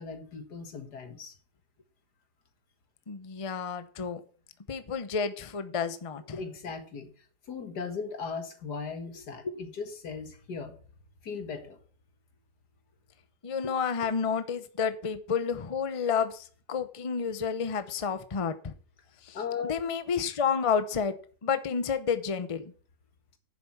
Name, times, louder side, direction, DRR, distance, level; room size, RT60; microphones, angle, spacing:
voice 1, 0.0-1.3 6.4-7.1 7.5-10.8 11.2-11.8 19.3-19.8, left 5 dB, 85° left, 2.3 m, -37 dB
voice 2, 3.1-4.2 4.7-6.4 9.4-9.5 13.4-18.7 19.2-19.4 19.7-22.6, left 6 dB, 30° left, 0.7 m, -30 dB
10.5 x 7.5 x 5.9 m
omnidirectional pair, 1.7 m